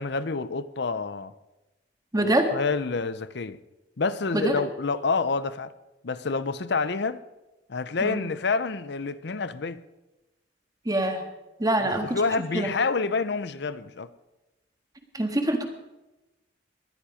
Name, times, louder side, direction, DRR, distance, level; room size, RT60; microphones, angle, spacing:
voice 1, 0.0-1.3 2.2-3.6 4.0-5.7 6.0-7.2 7.7-9.8 11.8-14.1, left 4 dB, 65° left, 0.7 m, -28 dB
voice 2, 2.1-2.5 4.3-4.5 8.0-8.2 10.8-11.2 11.6-12.2 12.5-12.7 15.1-15.7, right 1 dB, 20° right, 1.8 m, -24 dB
20.0 x 11.5 x 5.0 m
head